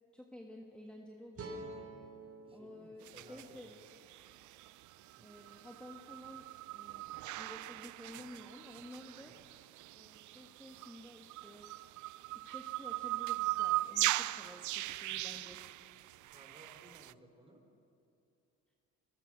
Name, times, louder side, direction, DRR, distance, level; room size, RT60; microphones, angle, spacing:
voice 1, 0.1-1.9 2.5-3.8 5.2-6.5 6.7-7.1 7.4-9.3 9.9-11.7 12.3-15.6, left 1 dB, 5° left, 1 dB, 1.7 m, -52 dB
sound 1, 1.3-4.5, right 2 dB, 50° right, 4.1 m, -50 dB
voice 2, 2.4-3.8 5.2-5.3 9.2-9.4 16.3-17.6, right 1 dB, 20° right, 2 dB, 4.3 m, -59 dB
sound 2, 3.1-17.1, right 17 dB, 75° right, 0.5 m, -40 dB
23.5 x 20.0 x 6.2 m, 2.7 s
cardioid pair, 90°, 30 cm